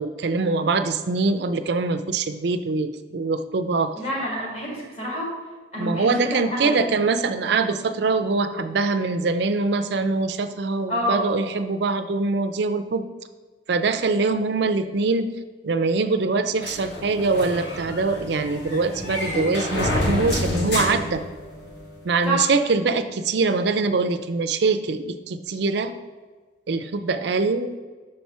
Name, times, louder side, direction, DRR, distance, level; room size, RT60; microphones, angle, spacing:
voice 1, 0.0-4.0 5.8-13.0 13.7-15.3 15.6-21.2 22.0-25.9 26.7-27.8, right 3 dB, 60° right, 9 dB, 0.4 m, -23 dB
voice 2, 4.0-5.3 5.7-6.9 10.9-11.3 22.2-22.5, right 1 dB, 35° left, -4 dB, 2.0 m, -27 dB
sound 1, 16.6-21.9, left 1 dB, 60° left, 1.3 m, -28 dB
6.4 x 4.3 x 4.5 m, 1.4 s
head